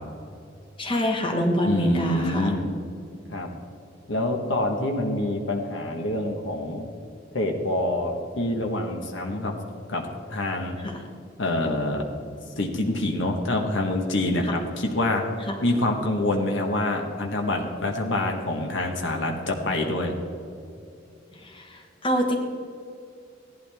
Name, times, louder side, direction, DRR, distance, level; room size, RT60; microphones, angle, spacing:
voice 1, 0.8-2.5 10.8-10.9 14.4-14.5 15.5-15.6 21.3-22.4, equal, 25° left, 2 dB, 1.3 m, -25 dB
voice 2, 1.7-2.7 3.3-3.5 4.1-6.8 7.3-9.6 9.9-10.8 11.4-12.0 12.6-20.1, left 1 dB, 75° left, 1 dB, 1.3 m, -26 dB
16.5 x 12.0 x 3.5 m, 2.6 s
head